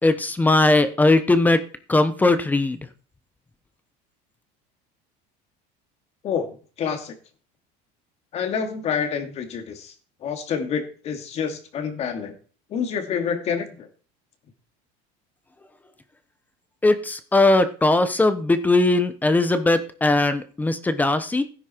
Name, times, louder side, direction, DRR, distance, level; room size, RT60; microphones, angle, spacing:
voice 1, 0.0-2.8 16.8-21.4, left 2 dB, 10° left, 11 dB, 1.0 m, -19 dB
voice 2, 6.8-7.2 8.3-9.9 10.2-12.3 12.7-13.9, left 7 dB, 35° left, 6 dB, 2.5 m, -27 dB
16.5 x 10.0 x 4.6 m, 0.40 s
cardioid pair, 165°, 19 cm